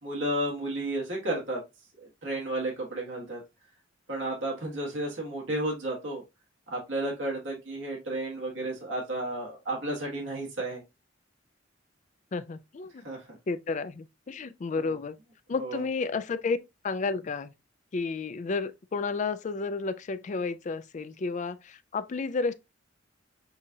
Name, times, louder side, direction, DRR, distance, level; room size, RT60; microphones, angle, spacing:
voice 1, 0.0-1.6 2.0-3.4 4.1-6.2 6.7-10.8 13.0-13.3 14.8-15.0 15.6-15.8, right 1 dB, 70° right, 1.5 m, -32 dB
voice 2, 12.3-13.1 13.5-15.2 15.5-16.6 16.8-17.5 17.9-22.5, left 4 dB, 40° left, 0.3 m, -31 dB
6.9 x 2.5 x 2.7 m
head